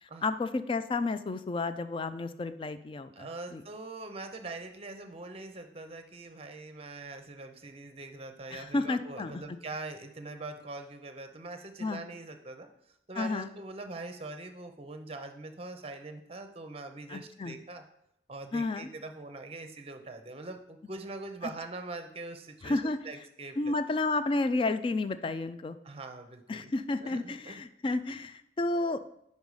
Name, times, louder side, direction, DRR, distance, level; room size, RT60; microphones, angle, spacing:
voice 1, 0.0-3.6 8.5-9.4 11.8-12.0 13.2-13.5 17.1-17.6 18.5-18.9 22.6-23.0 23.6-25.8 26.5-29.0, left 3 dB, 30° left, 12 dB, 0.3 m, -31 dB
voice 2, 3.1-17.8 18.3-23.7 25.8-26.7 27.0-27.6, right 3 dB, 35° right, 7 dB, 0.6 m, -43 dB
5.3 x 5.3 x 4.8 m, 0.76 s
head